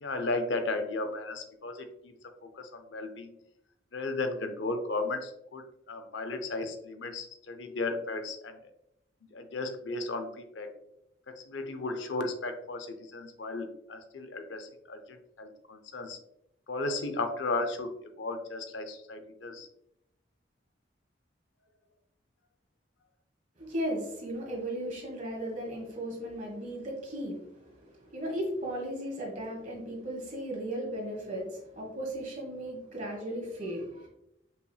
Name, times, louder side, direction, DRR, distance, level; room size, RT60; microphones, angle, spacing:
voice 1, 0.0-2.1 2.4-3.4 3.9-8.6 9.3-10.7 11.3-16.2 16.7-19.7, left 2 dB, 80° left, 7 dB, 0.5 m, -35 dB
voice 2, 23.6-34.1, right 1 dB, 40° right, -2 dB, 1.5 m, -36 dB
5.5 x 3.2 x 2.2 m, 0.81 s
head